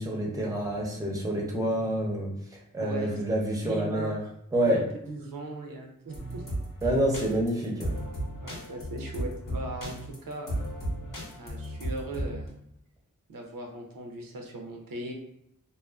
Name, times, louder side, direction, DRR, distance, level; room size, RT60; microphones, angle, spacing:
voice 1, 0.0-4.2 4.5-4.8 6.8-7.9, right 1 dB, 10° right, -1 dB, 0.6 m, -28 dB
voice 2, 2.8-3.2 3.6-4.1 4.7-6.5 8.4-10.6 11.4-12.5 13.3-15.1, right 2 dB, 85° right, 1 dB, 0.5 m, -38 dB
sound 1, 6.1-12.4, right 1 dB, 70° left, 0.8 m, -34 dB
2.3 x 2.3 x 2.3 m, 0.75 s
wide cardioid pair, 50°, 33 cm